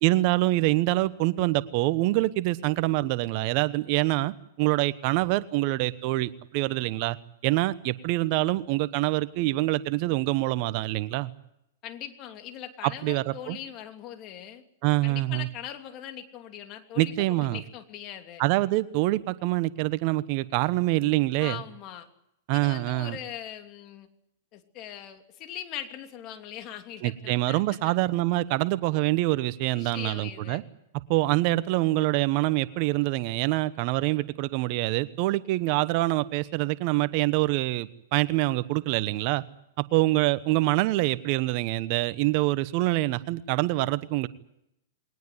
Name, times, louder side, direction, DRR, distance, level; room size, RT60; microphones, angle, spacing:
voice 1, 0.0-7.2 7.4-11.3 12.8-13.6 14.8-15.5 17.0-17.6 18.4-21.6 22.5-23.2 27.0-30.6 31.1-39.4 39.9-44.3, right 18 dB, 50° right, 15 dB, 1.0 m, -25 dB
voice 2, 11.8-14.6 15.0-18.4 21.4-22.1 22.5-24.1 24.5-27.9 29.7-30.6, left 10 dB, 40° left, 6 dB, 2.9 m, -40 dB
21.5 x 19.0 x 9.7 m, 0.80 s
hypercardioid pair, 120°, 0 cm